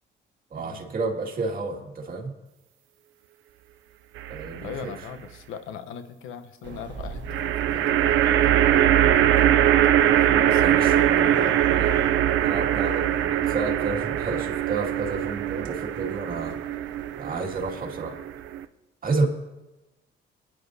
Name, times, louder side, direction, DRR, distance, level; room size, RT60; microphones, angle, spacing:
voice 1, 0.5-2.3 4.3-4.9 10.6-11.9 12.4-16.6 17.2-18.2 19.0-19.3, right 3 dB, 45° right, 1 dB, 2.2 m, -30 dB
sound 1, 4.2-4.8 7.3-18.6, right 11 dB, 85° right, 0.5 m, -22 dB
voice 2, 4.6-9.6 10.2-12.2, left 7 dB, 90° left, 9 dB, 0.9 m, -40 dB
Car / Alarm, 6.6-17.8, right 5 dB, 65° right, 1.3 m, -43 dB
22.0 x 10.5 x 2.7 m, 1.1 s
cardioid pair, 90°, 20 cm